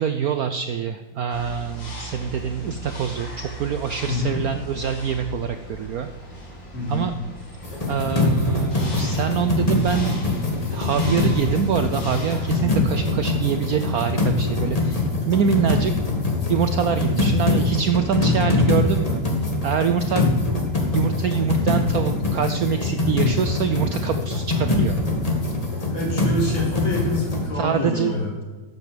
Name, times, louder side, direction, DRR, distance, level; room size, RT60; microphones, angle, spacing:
voice 1, 0.0-6.1 6.9-7.1 7.9-10.2 10.7-15.9 16.5-19.2 19.6-20.2 20.9-25.0 27.5-28.1, right 7 dB, 75° right, 9 dB, 0.8 m, -25 dB
sound 1, 1.3-12.6, right 1 dB, 65° left, 3.6 m, -38 dB
voice 2, 4.1-4.4 6.7-7.1 25.9-28.3, left 1 dB, 85° left, -4 dB, 4.6 m, -27 dB
sound 2, 7.6-27.5, left 2 dB, 20° left, 1.7 m, -23 dB
13.0 x 8.5 x 5.1 m, 1.3 s
omnidirectional pair, 2.2 m